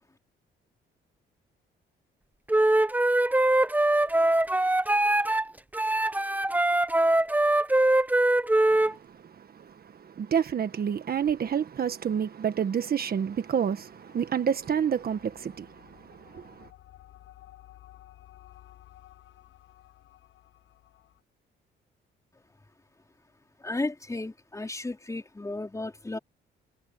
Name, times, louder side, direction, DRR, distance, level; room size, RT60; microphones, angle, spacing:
Wind instrument woodwind instrument, 2.5-5.4 5.7-8.9, right 1 dB, 10° right, 1.1 m, -23 dB
voice 1, 8.7-16.7, right 8 dB, 50° right, 1.5 m, -29 dB
sound 1, 12.9-21.2, left 13 dB, 85° left, 7.7 m, -55 dB
voice 2, 23.6-26.2, left 2 dB, 15° left, 4.4 m, -34 dB
cardioid pair, 90°, 20 cm